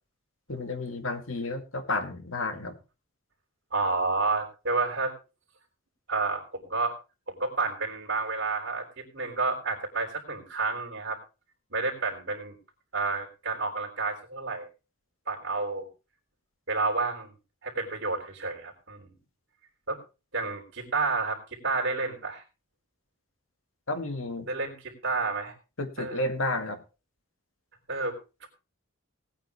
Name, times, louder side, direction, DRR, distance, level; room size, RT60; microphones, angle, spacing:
voice 1, 0.5-2.8 23.9-24.5 25.8-26.8, left 2 dB, 70° left, 6 dB, 2.2 m, -31 dB
voice 2, 3.7-5.1 6.1-6.9 7.3-11.2 11.7-12.5 12.9-14.7 15.3-15.9 16.7-17.3 17.6-19.1 19.9-20.0 20.3-22.4 24.5-25.5 26.0-26.2 27.9-28.5, right 3 dB, 55° right, 1 dB, 3.6 m, -30 dB
18.5 x 9.0 x 3.5 m, 0.31 s
head